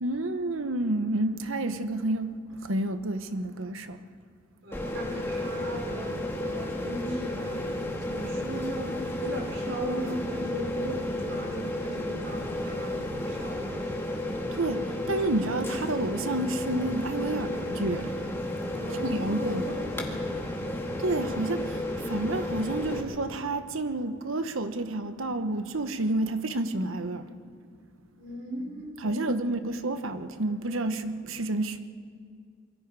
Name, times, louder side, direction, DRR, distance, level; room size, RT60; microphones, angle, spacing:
voice 1, 0.0-4.0 14.5-18.3 19.0-19.6 21.0-27.3 29.0-31.8, right 2 dB, 80° right, 1.2 m, -30 dB
voice 2, 4.6-14.0 18.7-20.7 28.2-29.3, equal, 65° right, 4.8 m, -38 dB
sound 1, 4.7-23.0, left 1 dB, 10° left, 2.2 m, -32 dB
27.0 x 23.5 x 4.8 m
head